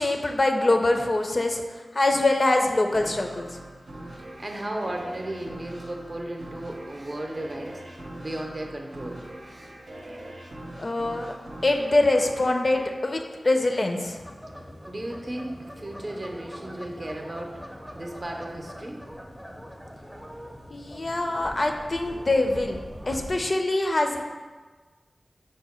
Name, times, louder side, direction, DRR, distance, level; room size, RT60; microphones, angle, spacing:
voice 1, 0.0-1.6 1.9-3.5 10.8-11.3 11.6-14.2 20.7-22.8 23.1-24.2, left 2 dB, 50° left, 3 dB, 0.4 m, -24 dB
sound 1, 2.9-14.1, right 1 dB, 85° right, 0.6 m, -42 dB
voice 2, 4.4-9.3 14.9-19.0, right 1 dB, 45° right, 1 dB, 0.6 m, -35 dB
sound 2, 14.2-23.4, equal, 5° right, 0.5 m, -42 dB
4.8 x 2.1 x 4.2 m, 1.4 s
cardioid pair, 50°, 0 cm